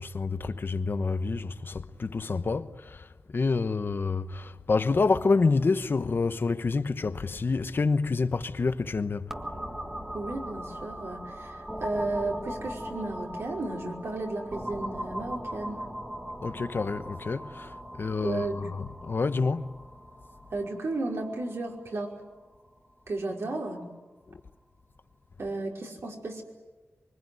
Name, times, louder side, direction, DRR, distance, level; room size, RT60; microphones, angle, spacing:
voice 1, 0.0-3.1 3.3-9.3 16.4-19.7, left 4 dB, 50° left, 1.1 m, -28 dB
sound 1, 9.3-22.9, equal, 10° right, 1.7 m, -39 dB
voice 2, 10.1-15.8 18.2-18.7 20.5-22.2 23.1-23.8 25.4-26.4, right 2 dB, 70° right, 5.3 m, -33 dB
25.0 x 24.5 x 9.5 m
wide cardioid pair, 125°, 5 cm